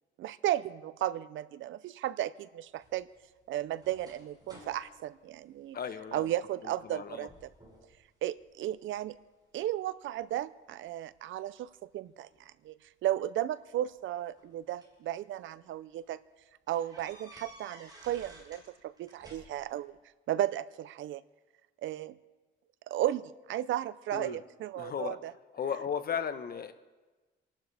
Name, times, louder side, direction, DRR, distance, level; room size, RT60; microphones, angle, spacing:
voice 1, 0.2-3.1 3.5-5.8 6.1-7.5 8.2-9.2 9.5-12.3 12.6-12.7 13.0-16.2 16.7-19.9 20.3-21.2 21.8-22.1 22.9-25.3, right 13 dB, 75° right, 17 dB, 0.6 m, -34 dB
sound 1, 2.8-6.2 6.6-7.0 7.3-7.9 8.4-9.1 9.7-11.1 12.3-12.4 13.6-15.0 15.6-15.7 16.0-16.1 16.7-18.7 19.0-19.8, right 1 dB, 20° right, 6.4 m, -55 dB
voice 2, 5.7-6.3 6.6-7.3 24.1-24.4 24.8-25.2 25.5-26.7, left 7 dB, 50° left, 10 dB, 1.2 m, -36 dB
29.5 x 12.0 x 3.5 m, 1.2 s
cardioid pair, 90°, 20 cm